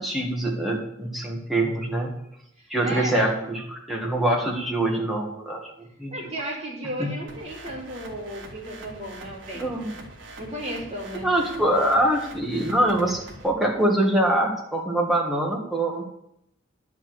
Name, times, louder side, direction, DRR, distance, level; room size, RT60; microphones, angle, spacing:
voice 1, 0.0-2.1 2.7-6.3 7.0-7.1 9.5-10.1 11.2-16.0, right 1 dB, ahead, -2 dB, 1.6 m, -24 dB
voice 2, 2.6-3.4 6.1-9.7 10.4-11.3, right 1 dB, 30° right, -4 dB, 3.3 m, -34 dB
sound 1, 7.3-13.5, right 2 dB, 70° right, 1.6 m, -43 dB
10.5 x 4.7 x 7.7 m, 0.76 s
head